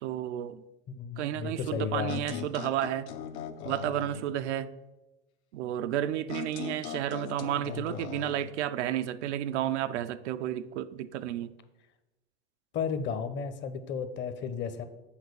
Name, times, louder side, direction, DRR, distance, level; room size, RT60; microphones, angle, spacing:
voice 1, 0.0-0.6 1.2-3.1 3.6-4.7 5.5-11.5, right 12 dB, 80° right, 0.5 m, -32 dB
voice 2, 0.9-2.5 12.7-14.8, left 6 dB, 35° left, 0.7 m, -33 dB
sound 1, 2.1-4.3 6.3-8.5, left 8 dB, 75° left, 0.8 m, -40 dB
7.3 x 3.7 x 6.6 m
hypercardioid pair, 105°, 34 cm